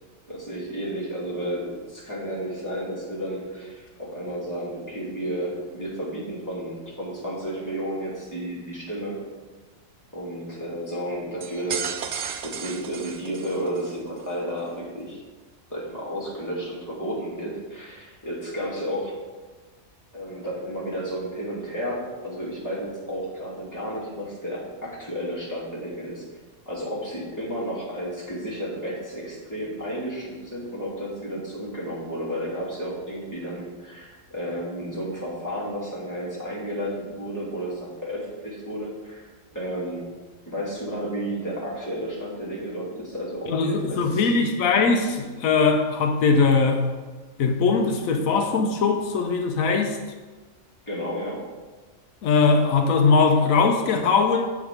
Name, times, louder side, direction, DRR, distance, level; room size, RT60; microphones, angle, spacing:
voice 1, 0.3-9.2 10.1-15.2 15.7-19.1 20.1-26.2 26.7-39.2 39.5-40.0 40.4-44.3 50.9-51.4, equal, 15° left, -6 dB, 2.4 m, -32 dB
sound 1, 11.4-13.9, right 7 dB, 60° right, 0.5 m, -33 dB
voice 2, 43.5-46.9 47.4-50.0 52.2-54.4, left 4 dB, 90° left, 4 dB, 1.2 m, -20 dB
8.3 x 5.1 x 5.1 m, 1.3 s
omnidirectional pair, 1.4 m